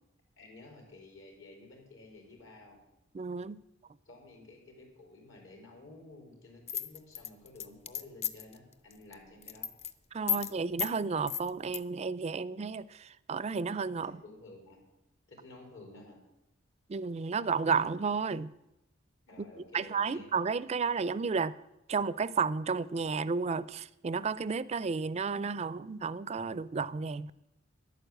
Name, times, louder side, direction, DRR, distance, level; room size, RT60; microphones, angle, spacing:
voice 1, 0.4-2.8 4.1-9.7 10.3-10.5 14.0-14.8 15.3-16.2 19.3-20.3, left 2 dB, 75° left, 4.1 m, -52 dB
voice 2, 3.1-3.6 10.1-14.2 16.9-18.5 19.4-21.5 21.9-27.3, right 5 dB, 35° right, 0.4 m, -32 dB
sound 1, 6.7-8.5 8.9-9.1 9.4-9.9 10.3-10.5 10.8-10.9 11.3-11.8, left 10 dB, 35° left, 0.6 m, -33 dB
11.0 x 9.3 x 7.8 m
head